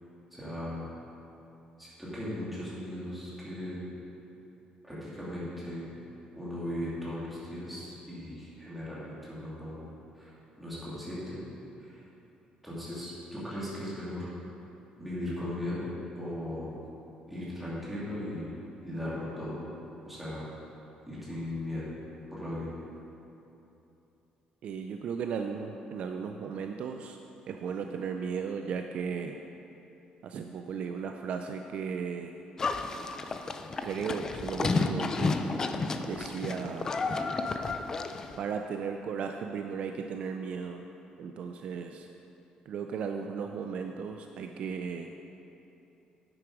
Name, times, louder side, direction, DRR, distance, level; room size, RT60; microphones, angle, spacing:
voice 1, 0.3-0.8 1.8-3.8 4.8-5.9 6.4-9.8 10.1-10.3 10.6-11.4 11.8-12.0 12.6-14.3 15.0-15.9 16.1-16.8 17.3-18.5 18.8-19.6 20.0-20.4 21.1-21.9 22.3-22.7, left 1 dB, 5° right, -9 dB, 2.5 m, -37 dB
voice 2, 24.6-27.2 27.5-29.4 30.2-32.4 33.8-35.4 36.0-36.9 38.4-40.8 41.2-42.1 42.7-45.1, right 6 dB, 50° right, 5 dB, 0.4 m, -36 dB
Livestock farm animals working animals, 32.6-38.4, left 3 dB, 25° left, 0.4 m, -31 dB
9.8 x 7.8 x 4.8 m, 2.9 s
cardioid pair, 170°, 3 cm